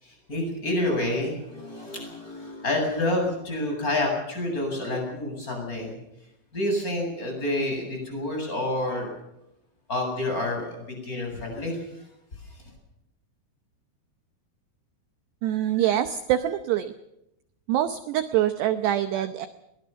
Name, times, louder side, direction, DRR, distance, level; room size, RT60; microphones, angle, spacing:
voice 1, 0.0-6.0 6.5-9.1 9.9-11.8 12.4-12.6, left 1 dB, 15° left, 2 dB, 8.1 m, -28 dB
voice 2, 15.4-16.9 17.7-19.5, right 12 dB, 80° right, 10 dB, 2.4 m, -25 dB
22.0 x 20.0 x 7.0 m, 0.84 s
omnidirectional pair, 6.0 m